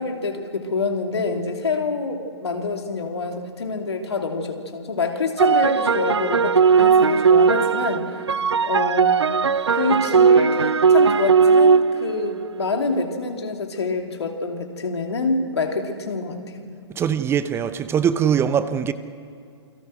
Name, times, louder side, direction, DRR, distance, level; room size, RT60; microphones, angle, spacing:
voice 1, 0.0-8.2 8.7-9.1 9.7-16.6, left 3 dB, 70° left, 3 dB, 3.1 m, -26 dB
sound 1, 5.4-12.8, right 6 dB, 75° right, 0.6 m, -18 dB
voice 2, 16.9-18.9, right 8 dB, 15° right, 12 dB, 0.8 m, -21 dB
28.5 x 23.0 x 6.4 m, 2.4 s
figure-of-eight pair, 115°, 14 cm